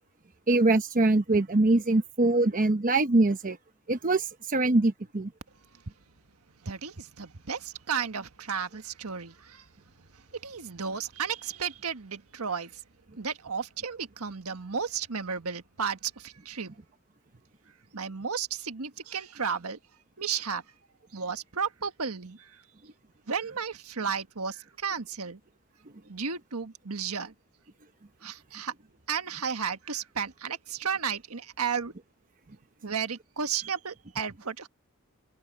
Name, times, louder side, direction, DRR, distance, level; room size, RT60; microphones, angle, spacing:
voice 1, 0.5-3.6 3.9-5.3, right 2 dB, 40° right, 0.9 m, -23 dB
voice 2, 6.6-12.8 13.2-16.8 17.9-19.8 20.2-20.6 21.1-22.6 23.3-25.4 26.1-27.3 28.2-28.7 29.1-31.9 32.8-34.7, right 6 dB, 90° right, 1.5 m, -33 dB
head